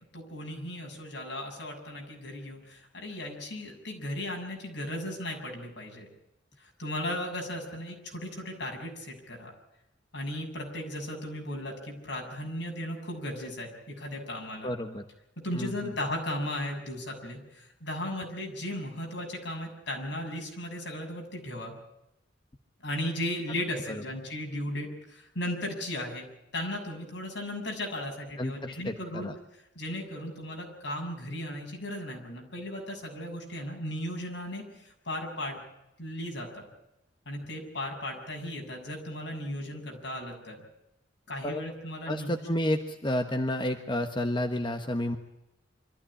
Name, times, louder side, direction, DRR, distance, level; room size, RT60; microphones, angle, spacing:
voice 1, 0.1-6.1 6.6-9.5 10.1-14.7 15.4-21.8 22.8-26.3 26.5-29.3 29.8-35.6 36.0-36.7 37.3-40.6 41.3-42.3, left 1 dB, 70° left, 1 dB, 7.0 m, -36 dB
voice 2, 14.6-15.0 15.5-15.9 28.4-29.3 41.4-41.6 42.1-45.2, left 1 dB, 25° left, 6 dB, 1.2 m, -30 dB
25.0 x 14.5 x 10.0 m, 0.88 s
head